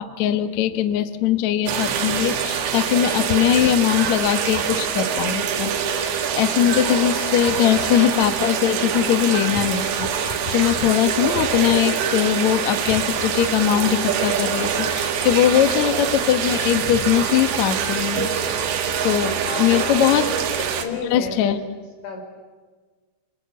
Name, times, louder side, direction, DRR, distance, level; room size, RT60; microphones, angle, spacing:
voice 1, 0.0-18.3 19.0-19.3 19.6-20.3 20.6-20.7 21.0-21.6, left 11 dB, 70° left, 9 dB, 1.7 m, -21 dB
sound 1, 1.7-20.8, right 7 dB, 80° right, 4.1 m, -24 dB
voice 2, 19.4-20.3 20.7-21.6 22.0-22.2, left 4 dB, 85° left, 4 dB, 6.7 m, -31 dB
26.5 x 26.5 x 8.3 m, 1.4 s
omnidirectional pair, 5.1 m